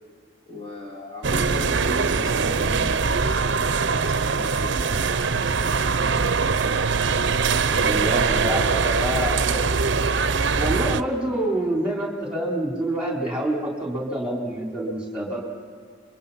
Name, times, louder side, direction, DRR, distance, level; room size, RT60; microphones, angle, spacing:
voice 1, 0.5-5.1 7.6-8.0, left 2 dB, 25° left, -2 dB, 2.7 m, -38 dB
sound 1, 1.2-11.0, right 5 dB, 65° right, 0.7 m, -22 dB
voice 2, 7.8-9.6 10.6-15.5, right 1 dB, 5° right, -1 dB, 3.8 m, -27 dB
27.0 x 24.0 x 5.7 m, 2.1 s
head